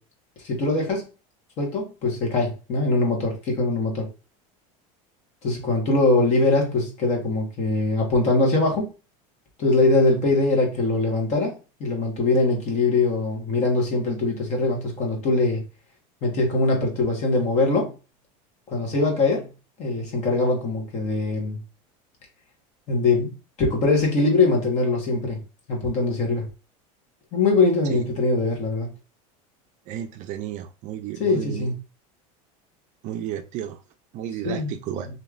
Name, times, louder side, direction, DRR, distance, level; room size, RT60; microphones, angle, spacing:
voice 1, 0.4-1.1 1.6-4.0 5.4-8.9 9.6-11.5 11.8-15.6 16.2-17.9 18.7-19.5 19.8-21.6 22.9-23.3 23.6-25.4 25.7-26.4 27.3-28.9 31.2-31.8 34.4-34.7, left 3 dB, 40° left, 1 dB, 1.3 m, -22 dB
voice 2, 29.9-31.7 33.0-33.8 34.1-35.1, right 11 dB, 45° right, 8 dB, 0.4 m, -32 dB
3.0 x 2.8 x 2.4 m, 0.32 s
supercardioid pair, 130°, 18 cm